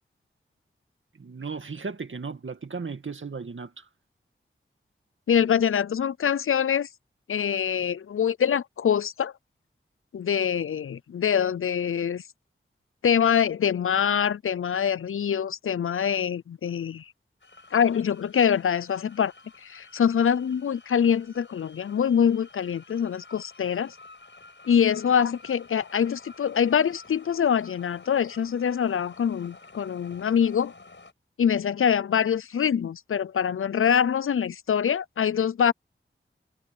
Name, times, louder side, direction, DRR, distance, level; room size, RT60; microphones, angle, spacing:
voice 1, 1.2-3.8, right 4 dB, 70° right, 2.2 m, -36 dB
voice 2, 5.3-6.9 7.3-9.3 10.1-12.2 13.0-17.0 17.7-19.3 19.6-24.0 24.7-30.7 31.4-35.7, left 8 dB, 85° left, 0.6 m, -24 dB
sound 1, 17.4-31.1, left 3 dB, 65° left, 5.8 m, -51 dB
cardioid pair, 40°, 21 cm